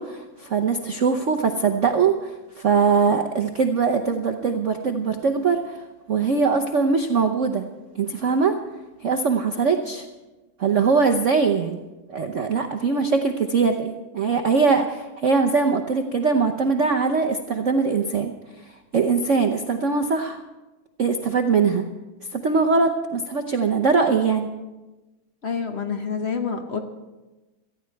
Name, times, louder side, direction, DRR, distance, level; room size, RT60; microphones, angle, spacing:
voice 1, 0.0-5.8 6.1-7.6 7.9-8.6 9.0-10.0 10.6-11.8 12.1-18.3 18.9-20.4 21.0-21.8 22.3-24.5, right 5 dB, 65° right, 4 dB, 0.7 m, -21 dB
voice 2, 25.4-26.8, left 6 dB, 50° left, 6 dB, 0.8 m, -27 dB
18.0 x 14.0 x 4.6 m, 1.1 s
omnidirectional pair, 2.4 m